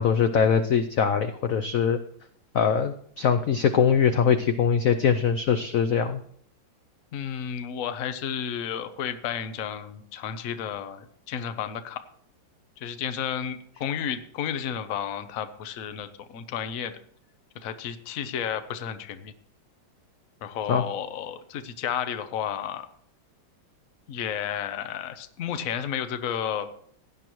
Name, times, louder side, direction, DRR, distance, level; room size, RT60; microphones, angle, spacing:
voice 1, 0.0-2.0 2.5-6.2 20.7-20.8, left 7 dB, 85° left, 9 dB, 0.7 m, -22 dB
voice 2, 7.1-12.0 12.8-17.0 17.6-19.3 20.4-22.9 24.1-26.7, left 8 dB, 55° left, 10 dB, 1.1 m, -32 dB
16.5 x 10.0 x 3.1 m, 0.62 s
omnidirectional pair, 2.2 m